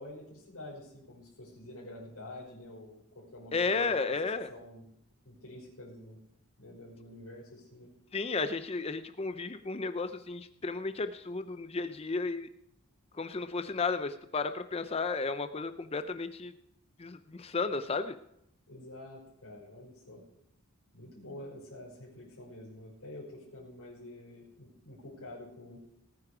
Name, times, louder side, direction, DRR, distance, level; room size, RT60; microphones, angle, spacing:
voice 1, 0.0-4.1 4.5-4.8 5.2-6.2 6.6-7.9 18.7-20.2 20.9-25.8, left 1 dB, 75° left, -6 dB, 5.5 m, -48 dB
voice 2, 3.5-4.5 8.1-12.5 13.1-16.5 17.0-18.1, left 4 dB, 25° left, 10 dB, 0.5 m, -33 dB
18.5 x 9.7 x 4.9 m, 0.76 s
head